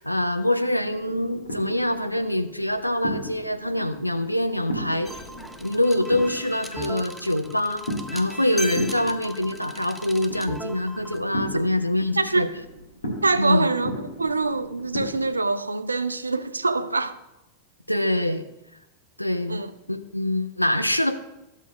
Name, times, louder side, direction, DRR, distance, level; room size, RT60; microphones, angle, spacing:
voice 1, 0.0-5.1 5.6-12.5 13.4-13.7 17.9-18.4 19.2-19.6 19.9-21.1, left 1 dB, 90° left, 0.5 m, -24 dB
sound 1, 0.8-15.3, equal, 75° left, 1.5 m, -37 dB
sound 2, 5.1-11.2, right 1 dB, ahead, 0.5 m, -38 dB
voice 2, 12.2-12.5 13.2-17.1 19.5-19.7, right 3 dB, 80° right, 0.4 m, -25 dB
13.0 x 6.4 x 2.2 m
figure-of-eight pair, 90°, 0 cm